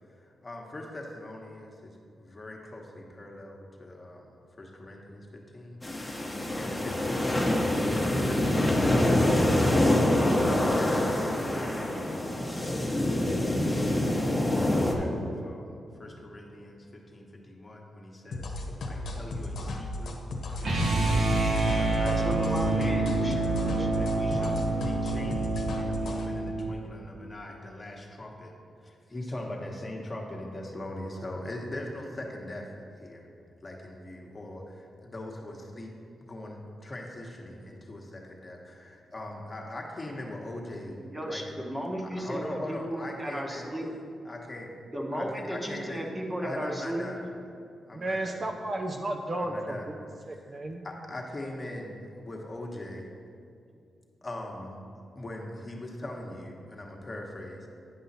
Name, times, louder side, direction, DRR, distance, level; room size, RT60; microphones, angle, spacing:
voice 1, 0.4-1.9 2.2-4.2 4.6-5.2 5.5-5.8 6.5-10.9 11.6-12.0 13.5-15.6 16.0-18.4 18.9-20.1 20.9-22.4 22.7-22.9 24.0-24.6 24.8-28.5 29.1-32.7 33.0-33.2 33.6-34.6 35.0-35.9 36.3-40.9 41.2-41.4 42.2-43.6 44.3-44.7 45.1-46.0 46.4-47.2 47.9-48.4 49.4-49.9 50.8-53.0 54.2-54.7 55.1-57.6, left 1 dB, 30° left, 0 dB, 1.2 m, -41 dB
sound 1, 5.8-14.9, left 1 dB, 10° left, 1.1 m, -25 dB
sound 2, 18.3-26.2, left 1 dB, 75° left, 0.9 m, -35 dB
sound 3, 20.6-26.7, right 2 dB, 75° right, 1.5 m, -27 dB
voice 2, 22.0-24.9 41.0-43.9 44.9-47.1, equal, 15° right, 1 dB, 1.1 m, -35 dB
voice 3, 47.9-50.8, right 1 dB, 40° right, 3 dB, 0.6 m, -33 dB
9.6 x 5.5 x 4.1 m, 2.5 s
cardioid pair, 80°, 0 cm